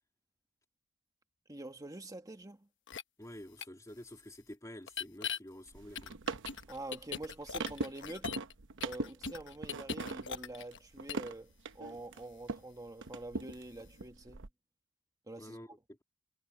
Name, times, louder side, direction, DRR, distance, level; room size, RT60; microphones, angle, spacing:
voice 1, 1.5-2.7 6.7-8.3 8.8-14.4 15.3-15.6, right 2 dB, 15° right, 1.6 m, -46 dB
sound 1, 2.9-3.0 3.6-3.7 4.9-5.4 6.0-8.5 8.8-10.8 11.1-11.3, left 7 dB, 55° left, 1.1 m, -40 dB
voice 2, 3.2-6.2 15.4-16.0, left 1 dB, 15° left, 2.6 m, -49 dB
sound 2, 5.7-12.7 13.0-14.5, right 3 dB, 60° right, 1.0 m, -42 dB
head